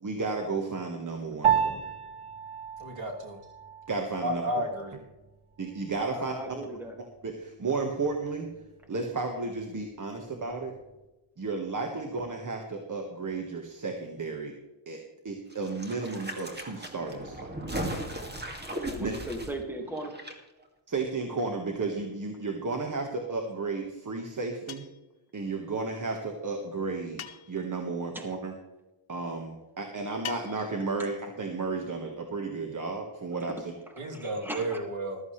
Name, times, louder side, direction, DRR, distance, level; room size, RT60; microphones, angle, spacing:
voice 1, 0.0-1.9 3.9-4.6 5.6-6.3 7.2-8.5 8.9-10.7 11.4-14.5 14.9-17.8 19.0-19.1 20.9-24.9 25.3-27.2 27.5-28.5 29.1-33.7, right 3 dB, 40° right, 3 dB, 1.6 m, -33 dB
Piano, 1.4-11.1, right 8 dB, 90° right, 1.4 m, -34 dB
voice 2, 2.8-3.4 4.2-4.9 34.0-35.2, right 1 dB, 65° right, -1 dB, 3.1 m, -32 dB
voice 3, 6.0-7.0 18.7-20.1 28.1-28.2 33.5-33.7 33.9-34.8, right 1 dB, 5° right, 2 dB, 2.0 m, -38 dB
sound 1, 15.5-20.3 20.6-20.7, right 1 dB, 20° right, 2.2 m, -37 dB
sound 2, 24.7-25.1 27.2-27.7 30.2-30.8, left 9 dB, 75° left, 1.3 m, -41 dB
14.5 x 13.5 x 3.3 m, 1.0 s
wide cardioid pair, 130°, 49 cm